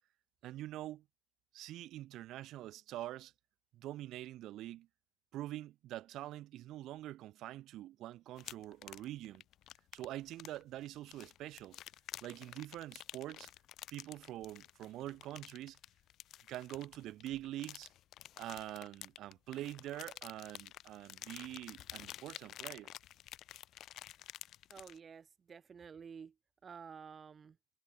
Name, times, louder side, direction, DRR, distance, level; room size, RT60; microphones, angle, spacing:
voice 1, 0.4-1.0 1.5-3.3 3.7-4.9 5.3-9.4 9.9-11.8 12.2-13.5 13.9-15.8 16.5-17.9 18.4-22.9, right 14 dB, 50° right, 1.6 m, -45 dB
sound 1, 8.4-25.0, left 13 dB, 45° left, 0.6 m, -51 dB
voice 2, 24.7-26.3 26.6-27.6, right 6 dB, 25° right, 0.8 m, -51 dB
hypercardioid pair, 95°, 0 cm